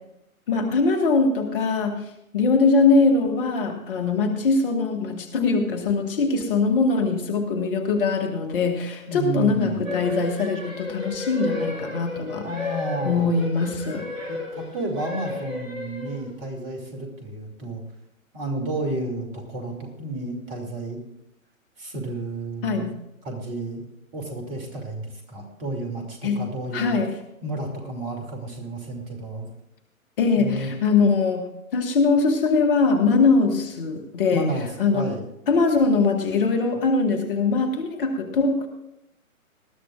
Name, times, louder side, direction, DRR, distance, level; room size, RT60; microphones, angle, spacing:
voice 1, 0.5-12.5 13.0-14.1 22.6-22.9 26.2-26.4 26.7-27.1 30.2-34.5 34.8-35.1 35.5-38.7, left 4 dB, 40° left, 4 dB, 1.6 m, -22 dB
voice 2, 9.1-9.8 12.4-13.3 14.3-17.8 18.3-21.0 21.8-23.0 23.2-23.8 24.1-27.0 27.4-29.5 30.3-30.7 34.3-34.7 34.9-35.2, right 2 dB, 25° right, 2 dB, 2.7 m, -31 dB
sound 1, 9.8-16.4, left 2 dB, 65° right, 5.0 m, -33 dB
20.0 x 13.0 x 2.5 m, 0.82 s
figure-of-eight pair, 125°, 42 cm